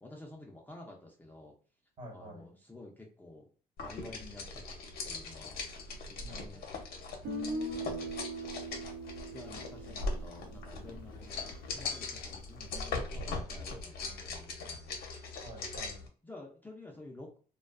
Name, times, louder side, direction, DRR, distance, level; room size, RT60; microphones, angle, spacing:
voice 1, 0.0-1.5 2.1-3.5 3.8-4.8 5.0-5.6 6.0-6.8 7.7-8.2 9.3-15.0 16.2-17.4, left 2 dB, 10° left, -1 dB, 0.5 m, -51 dB
voice 2, 2.0-2.5 6.2-6.8 7.2-7.6 15.4-16.1, right 1 dB, 50° right, 1 dB, 1.3 m, -49 dB
sound 1, 3.8-16.1, left 3 dB, 65° left, 0.7 m, -40 dB
Guitar, 7.2-11.2, right 1 dB, 80° right, 0.9 m, -40 dB
2.4 x 2.3 x 2.3 m, 0.40 s
cardioid pair, 110°, 17 cm